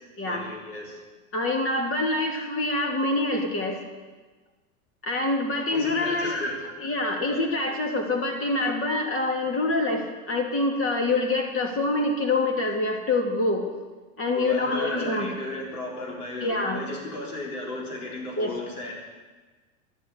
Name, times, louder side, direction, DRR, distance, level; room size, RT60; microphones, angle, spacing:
voice 1, 0.3-1.0 5.7-6.6 7.2-7.4 14.3-18.9, left 2 dB, 85° left, -2 dB, 4.3 m, -35 dB
voice 2, 1.3-3.8 5.0-13.7 14.2-15.5 16.4-16.8 18.4-18.5, left 2 dB, 30° left, 2 dB, 2.8 m, -26 dB
12.0 x 8.3 x 8.4 m, 1.3 s
hypercardioid pair, 105°, 44 cm